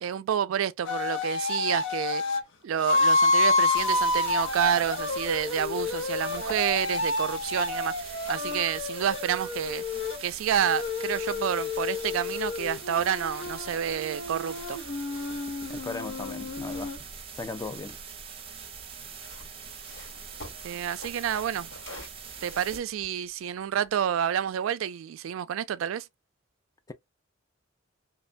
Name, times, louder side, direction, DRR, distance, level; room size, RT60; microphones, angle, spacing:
voice 1, 0.0-2.2 2.6-9.8 10.2-14.8 20.6-21.7 22.4-26.1, right 9 dB, 90° right, 0.3 m, -29 dB
sound 1, 0.8-2.4 2.8-10.2 10.6-17.0, left 3 dB, 65° left, 0.6 m, -29 dB
sound 2, 3.7-22.8, right 6 dB, 30° right, 0.6 m, -43 dB
sound 3, 6.3-7.0 7.6-13.0 13.3-17.9 18.9-24.5, left 1 dB, 85° left, 1.9 m, -51 dB
voice 2, 15.7-17.1 17.3-17.9 26.9-27.0, left 3 dB, 15° left, 0.3 m, -37 dB
2.9 x 2.1 x 2.4 m
head